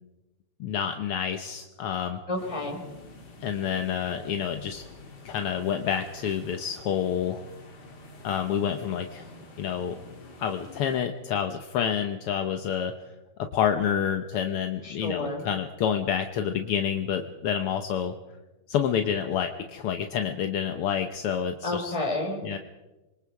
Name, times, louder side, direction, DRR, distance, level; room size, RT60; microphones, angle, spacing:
voice 1, 0.6-2.2 3.4-4.8 5.2-7.4 8.2-9.3 9.6-10.0 10.4-12.9 13.4-18.2 18.7-22.0 22.4-22.6, left 8 dB, 65° left, 6 dB, 1.5 m, -28 dB
voice 2, 2.3-2.8 14.8-15.4 21.6-22.4, left 2 dB, 10° left, 1 dB, 4.3 m, -30 dB
sound 1, 2.4-11.0, left 2 dB, 35° left, 2.7 m, -48 dB
26.5 x 24.5 x 4.8 m, 1.1 s
omnidirectional pair, 3.5 m